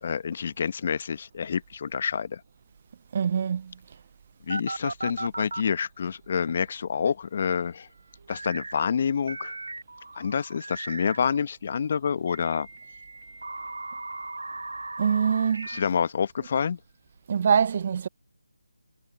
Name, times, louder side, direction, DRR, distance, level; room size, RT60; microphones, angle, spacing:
voice 1, 0.0-2.4 4.5-7.9 8.3-9.6 10.1-12.7 15.7-16.8, left 6 dB, 40° left, 1.1 m, -28 dB
voice 2, 3.1-3.7 15.0-15.7 17.3-18.1, right 7 dB, 35° right, 0.3 m, -24 dB
sound 1, 4.5-5.7 8.3-8.8 9.3-11.4 12.3-15.8, right 2 dB, 70° right, 1.7 m, -37 dB
figure-of-eight pair, 160°, 0 cm